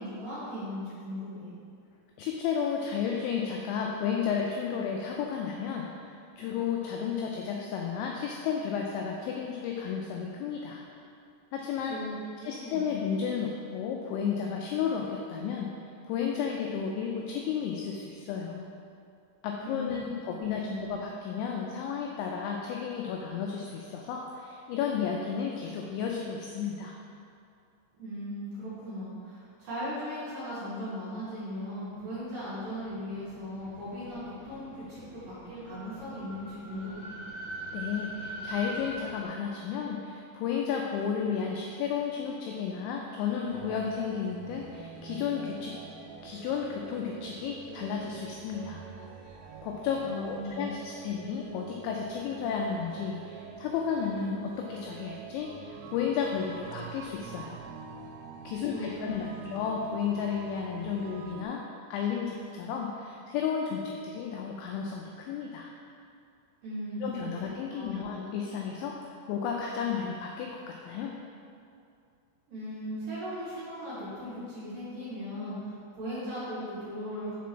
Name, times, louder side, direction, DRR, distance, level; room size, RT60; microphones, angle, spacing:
voice 1, 0.0-1.5 11.9-12.9 19.6-20.1 20.6-20.9 28.0-37.1 50.0-50.7 58.7-59.5 66.6-68.1 72.5-77.4, equal, 60° right, -11 dB, 2.6 m, -38 dB
voice 2, 2.2-10.8 11.5-12.0 12.5-15.7 16.1-18.7 19.4-27.0 37.7-45.8 46.2-48.8 49.3-49.4 49.6-57.6 58.4-61.6 61.9-65.7 67.0-71.2, left 7 dB, 85° left, 0 dB, 2.6 m, -33 dB
sound 1, 31.8-39.2, right 1 dB, 55° left, 2.4 m, -43 dB
sound 2, 43.5-61.5, right 6 dB, 90° right, 3.2 m, -46 dB
7.3 x 3.7 x 6.0 m, 2.4 s
omnidirectional pair, 5.7 m